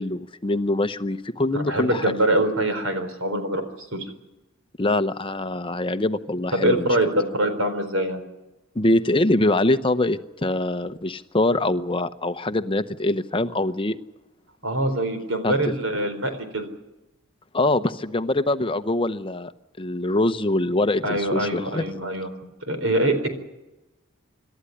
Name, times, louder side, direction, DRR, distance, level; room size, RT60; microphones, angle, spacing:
voice 1, 0.0-2.1 4.8-7.0 8.7-14.0 15.4-15.5 17.5-19.5 19.8-21.9, left 2 dB, 25° left, 11 dB, 0.8 m, -23 dB
voice 2, 1.5-3.6 3.9-4.1 6.5-8.2 14.6-16.7 21.0-22.3 22.6-23.3, right 1 dB, 80° right, 8 dB, 4.2 m, -24 dB
26.5 x 13.0 x 9.9 m, 1.0 s
head